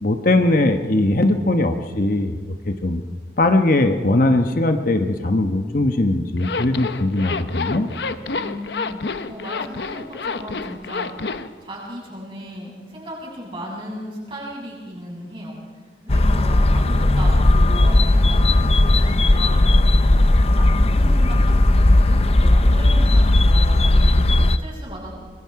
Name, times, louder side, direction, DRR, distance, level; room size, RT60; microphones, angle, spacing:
voice 1, 0.0-2.4 2.7-3.0 3.4-7.9, left 2 dB, 50° left, 6 dB, 1.1 m, -19 dB
Zipper (clothing), 6.4-11.5, left 4 dB, 75° left, 0.9 m, -28 dB
voice 2, 8.3-9.0 9.3-11.1 11.6-15.5 16.1-25.2, equal, 30° right, -3 dB, 7.7 m, -36 dB
sound 1, 16.1-24.6, left 1 dB, 35° left, 0.7 m, -16 dB
25.5 x 21.0 x 4.8 m, 1.5 s
head